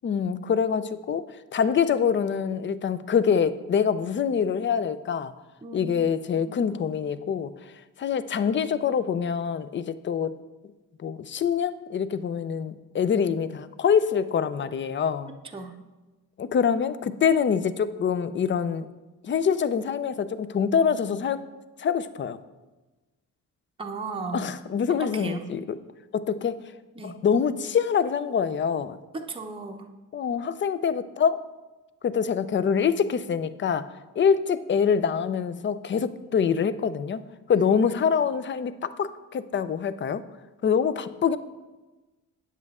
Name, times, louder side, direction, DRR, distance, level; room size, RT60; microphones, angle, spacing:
voice 1, 0.0-1.2 1.5-5.3 5.7-7.5 8.0-10.3 11.0-15.3 16.4-18.9 19.2-21.4 21.8-22.4 24.3-25.8 26.1-26.6 27.0-29.0 30.1-31.4 32.0-33.9 34.2-37.2 37.5-40.2 40.6-41.4, left 7 dB, 35° left, 14 dB, 0.5 m, -25 dB
voice 2, 5.6-5.9 6.4-6.7 15.5-15.7 23.8-24.5 24.9-25.5 27.0-27.1 29.1-29.9 37.5-37.7, right 4 dB, 15° right, 3 dB, 0.7 m, -36 dB
9.4 x 7.4 x 3.6 m, 1.2 s
cardioid pair, 100°, 33 cm